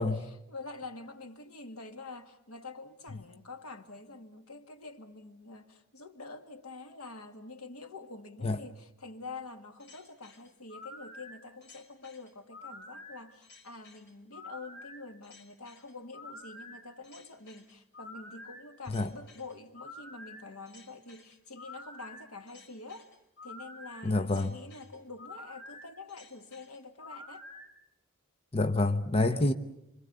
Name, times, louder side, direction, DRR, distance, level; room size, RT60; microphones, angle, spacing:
voice 1, 0.0-23.1 23.4-27.5 29.3-29.5, left 3 dB, 90° left, 1.9 m, -47 dB
sound 1, 9.8-27.7, left 2 dB, 50° left, 4.1 m, -49 dB
voice 2, 24.0-24.6 28.5-29.5, left 2 dB, 25° left, 0.9 m, -27 dB
26.5 x 25.5 x 6.8 m
head